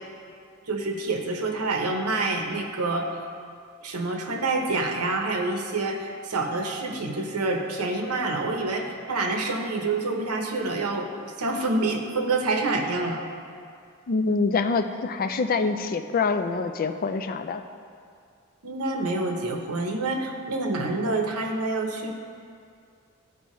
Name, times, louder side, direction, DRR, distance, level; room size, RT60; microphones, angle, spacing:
voice 1, 0.7-3.1 3.8-13.2 18.6-22.1, right 2 dB, 90° right, 2 dB, 0.9 m, -27 dB
voice 2, 14.1-17.6, left 4 dB, 40° left, 8 dB, 0.4 m, -25 dB
13.5 x 4.6 x 3.1 m, 2.3 s
head